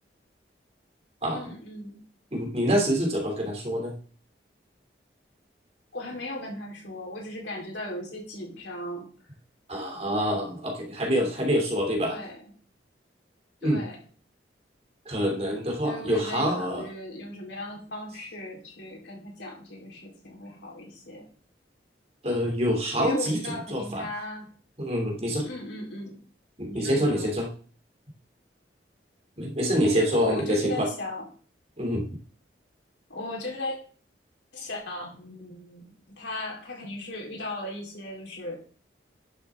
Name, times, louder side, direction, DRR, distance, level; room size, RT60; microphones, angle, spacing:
voice 1, 1.3-2.0 5.9-9.1 12.0-12.5 13.6-14.0 15.8-21.3 23.0-24.5 25.4-26.2 26.6-27.3 29.8-31.3 33.1-33.8 34.5-38.6, left 1 dB, 85° left, -2 dB, 4.4 m, -37 dB
voice 2, 2.3-3.9 9.7-12.2 13.6-13.8 15.0-16.9 22.2-23.4 23.7-24.0 24.8-25.4 26.6-27.5 29.4-30.9 31.8-32.0, equal, 35° right, 0 dB, 3.2 m, -26 dB
11.0 x 7.4 x 3.9 m, 0.41 s
head